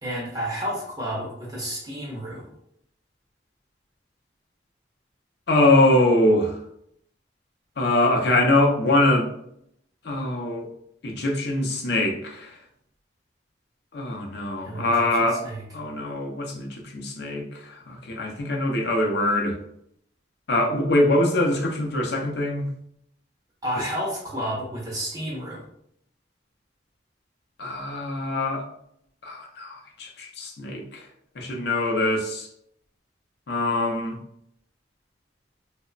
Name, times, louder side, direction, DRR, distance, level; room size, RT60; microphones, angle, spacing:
voice 1, 0.0-2.5 14.6-15.6 23.6-25.7, equal, 20° right, -4 dB, 0.5 m, -31 dB
voice 2, 5.5-6.5 7.8-9.3 10.0-10.7 11.0-12.5 13.9-15.4 15.7-19.5 20.5-22.7 27.6-28.7 29.2-31.0 31.4-32.5 33.5-34.2, left 1 dB, 60° left, 1 dB, 0.5 m, -23 dB
2.9 x 2.0 x 2.4 m, 0.72 s
head